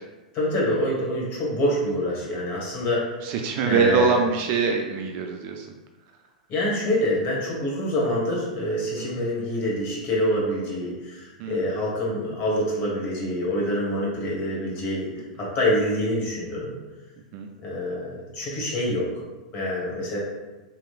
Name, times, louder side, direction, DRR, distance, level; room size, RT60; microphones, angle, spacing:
voice 1, 0.3-3.1 3.6-4.2 6.5-15.1 15.4-16.7 17.6-19.1 19.5-20.2, left 1 dB, 40° left, -5 dB, 1.2 m, -26 dB
voice 2, 3.2-5.7 9.0-9.1 11.4-11.6 17.3-17.5, right 5 dB, 45° right, 3 dB, 0.3 m, -24 dB
3.0 x 3.0 x 2.4 m, 1.1 s
figure-of-eight pair, 100°, 4 cm